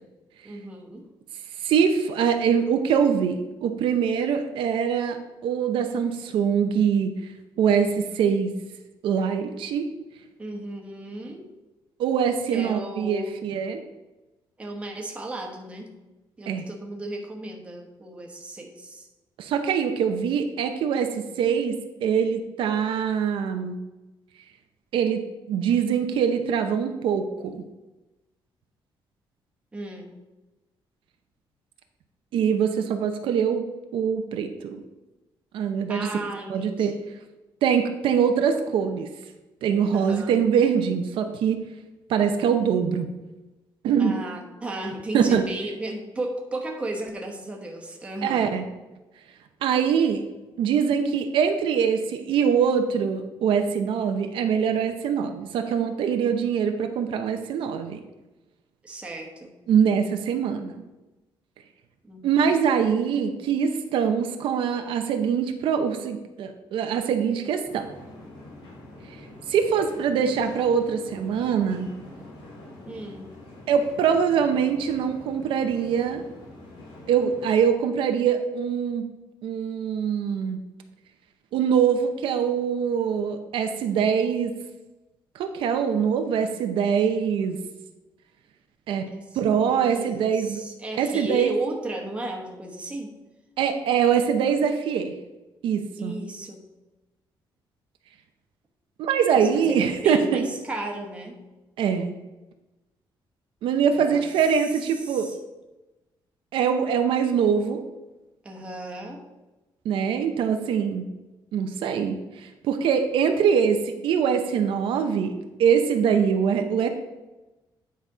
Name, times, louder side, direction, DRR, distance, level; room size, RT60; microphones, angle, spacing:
voice 1, 0.4-1.1 10.4-11.5 12.5-13.4 14.6-15.9 16.4-19.1 29.7-30.1 35.9-37.0 39.9-40.3 44.0-48.6 58.8-59.5 62.0-62.4 72.9-73.3 89.1-93.1 96.0-96.7 99.3-101.4 103.9-104.3 105.0-105.4 108.4-109.2, right 1 dB, 15° right, 0 dB, 1.1 m, -35 dB
voice 2, 1.6-7.1 7.6-8.5 9.0-9.9 12.0-13.8 16.5-16.7 19.4-21.1 21.4-23.8 24.9-25.2 25.5-27.6 32.3-33.6 33.9-34.8 35.5-36.1 36.5-36.9 37.6-39.1 39.6-41.6 42.1-43.1 43.8-44.2 45.1-45.4 48.2-48.6 49.6-50.2 50.6-58.0 59.7-60.8 62.2-67.9 69.5-71.9 73.7-76.2 77.1-79.0 79.4-80.6 81.5-84.5 85.3-87.6 88.9-89.1 89.3-90.6 91.0-91.5 93.6-95.1 95.6-96.2 99.0-100.4 101.8-102.1 103.6-105.3 106.5-107.8 109.8-111.0 111.5-116.9, right 7 dB, 80° right, 6 dB, 0.7 m, -23 dB
sound 1, 67.6-77.5, left 1 dB, 80° left, 2.9 m, -45 dB
9.4 x 4.2 x 4.9 m, 1.1 s
cardioid pair, 175°, 9 cm